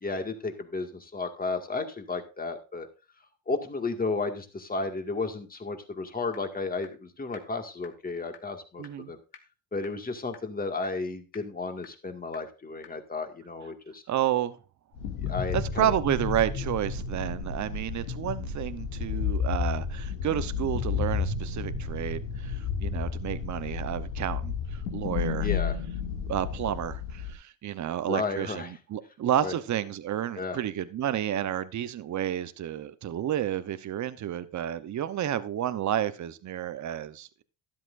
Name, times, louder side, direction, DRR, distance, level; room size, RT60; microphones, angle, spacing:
voice 1, 0.0-2.9 3.5-9.2 9.7-14.0 15.2-15.9 25.4-25.8 28.1-28.7 29.4-29.5 30.4-30.6, left 3 dB, 20° left, 2.0 m, -33 dB
sound 1, 6.3-6.4 6.8-6.9 7.3-7.4 7.8-7.9 8.3-8.4 8.8-8.9 9.3-9.4 9.8-9.9 10.3-10.4 10.8-10.9 11.3-11.4 11.8-11.9 12.3-12.4 12.8-12.9, left 9 dB, 55° left, 1.9 m, -47 dB
voice 2, 8.8-9.1 14.1-14.6 15.5-24.5 24.9-25.5 26.3-37.4, right 11 dB, 40° right, 0.9 m, -30 dB
sound 2, 15.0-27.3, left 6 dB, 85° left, 2.3 m, -32 dB
12.5 x 11.0 x 2.6 m
supercardioid pair, 95°, 46 cm